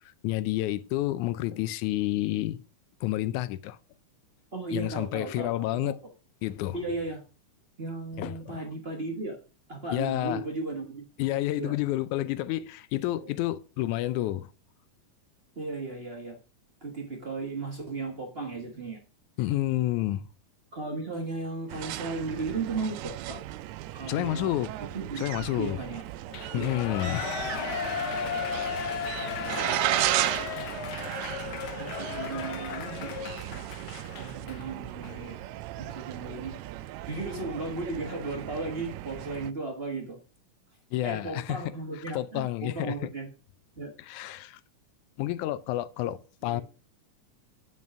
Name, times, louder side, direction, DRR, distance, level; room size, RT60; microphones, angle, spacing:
voice 1, 0.2-2.6 3.0-3.8 4.7-6.0 6.4-6.8 8.2-8.6 9.9-10.4 11.2-14.5 19.4-20.3 24.1-24.7 25.2-25.8 26.5-27.2 27.5-27.6 40.9-41.6 42.1-42.9 44.1-44.6 45.2-46.6, left 15 dB, 85° left, 2.1 m, -29 dB
voice 2, 4.5-5.5 5.8-6.0 6.7-7.2 7.8-9.4 9.7-11.0 11.6-11.8 13.2-13.3 15.5-16.4 16.8-19.0 20.7-23.4 23.9-24.5 24.8-25.2 25.6-26.0 26.5-26.9 27.6-27.8 29.2-30.4 31.6-33.2 34.2-35.4 35.8-36.6 37.1-40.2 41.0-43.3 43.8-43.9 46.4-46.6, right 3 dB, 35° right, 1.0 m, -36 dB
sound 1, 21.7-39.5, right 15 dB, 80° right, 1.8 m, -35 dB
Shout / Cheering, 26.3-34.6 35.0-35.1, left 7 dB, 65° left, 1.4 m, -35 dB
9.5 x 5.5 x 6.1 m
omnidirectional pair, 3.4 m